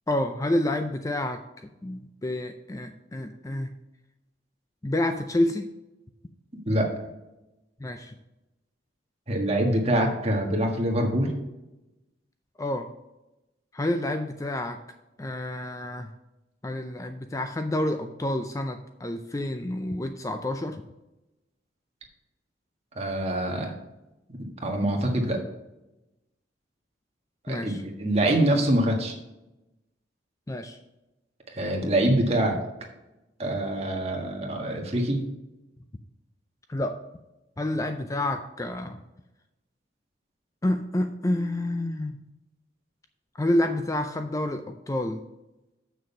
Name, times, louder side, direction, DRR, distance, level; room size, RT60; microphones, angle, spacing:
voice 1, 0.1-3.7 4.8-5.7 7.8-8.1 12.6-12.9 13.7-14.8 15.2-16.1 16.6-20.8 27.5-27.8 30.5-30.8 36.7-37.0 37.6-39.0 40.6-42.2 43.4-45.2, left 1 dB, 15° left, 7 dB, 0.4 m, -29 dB
voice 2, 9.3-11.3 22.9-23.7 24.4-25.4 27.4-27.7 28.0-29.2 31.5-32.6 33.4-35.2, right 1 dB, 35° right, 1 dB, 1.5 m, -25 dB
7.1 x 6.3 x 5.5 m, 0.97 s
head